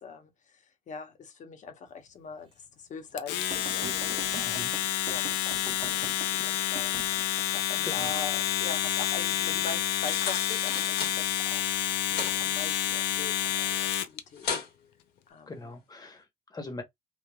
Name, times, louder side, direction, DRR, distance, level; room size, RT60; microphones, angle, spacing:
voice 1, 0.0-14.6 15.3-15.7, left 4 dB, 45° left, 0.9 m, -43 dB
Domestic sounds home sounds, 3.2-14.2, left 12 dB, 90° left, 0.4 m, -29 dB
sound 1, 3.5-7.5 10.9-11.3 12.4-12.5, right 6 dB, 30° right, 0.4 m, -44 dB
sound 2, 9.8-11.1 11.8-12.3 12.7-13.6 13.9-14.0 14.4-14.7 15.2-15.3, left 6 dB, 75° left, 1.5 m, -35 dB
voice 2, 15.5-16.8, left 2 dB, 25° left, 0.9 m, -41 dB
3.3 x 2.2 x 2.2 m
cardioid pair, 110°, 17 cm